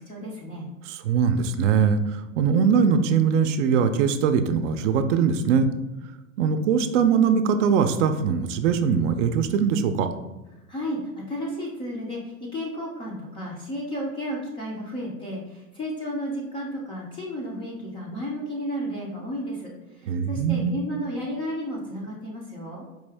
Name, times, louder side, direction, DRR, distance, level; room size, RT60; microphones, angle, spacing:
voice 1, 0.1-0.7 10.7-12.2 12.5-19.7 20.3-22.8, equal, 15° left, -3 dB, 0.3 m, -32 dB
voice 2, 0.9-5.7 6.4-10.1 20.0-20.8, right 6 dB, 60° right, 9 dB, 0.5 m, -21 dB
4.7 x 2.6 x 3.3 m, 1.1 s
hypercardioid pair, 125°, 41 cm